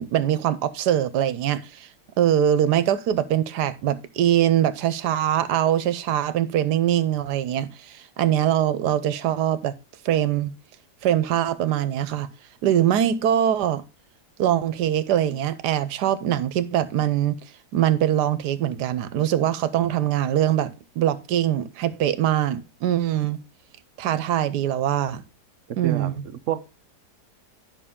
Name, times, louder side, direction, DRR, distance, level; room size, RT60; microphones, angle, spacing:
voice 1, 0.0-1.9 2.2-9.7 10.0-10.5 11.0-12.3 12.6-13.8 14.4-17.4 17.7-23.4 24.0-25.2 25.8-26.2, right 11 dB, 80° right, 1.3 m, -22 dB
voice 2, 25.7-26.6, right 11 dB, 65° right, 0.8 m, -30 dB
11.0 x 5.7 x 3.6 m
omnidirectional pair, 1.8 m